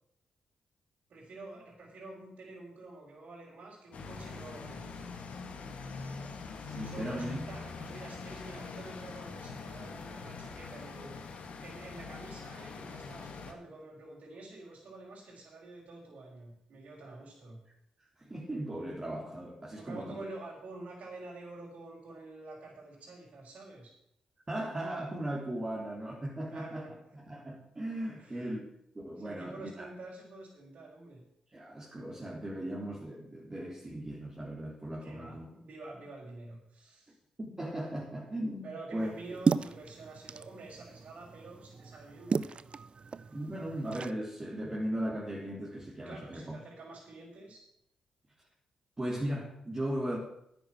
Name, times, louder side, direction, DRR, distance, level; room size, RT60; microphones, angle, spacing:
voice 1, 1.1-5.0 6.8-11.1 11.6-17.6 19.8-23.9 26.5-26.9 28.1-28.4 29.2-31.2 35.0-37.2 38.6-42.6 43.2-43.3 46.0-47.6, right 2 dB, 60° right, -6 dB, 4.6 m, -48 dB
sound 1, 3.9-13.5, left 4 dB, 65° left, 2.1 m, -43 dB
voice 2, 6.7-7.4 18.2-20.2 24.5-26.9 27.1-28.7 29.0-29.9 31.5-35.5 37.4-39.4 43.3-46.6 49.0-50.2, right 1 dB, 25° right, -4 dB, 3.6 m, -37 dB
sound 2, 39.0-44.1, right 5 dB, 45° right, 0.6 m, -35 dB
10.5 x 9.1 x 7.7 m, 0.76 s
hypercardioid pair, 45°, 2 cm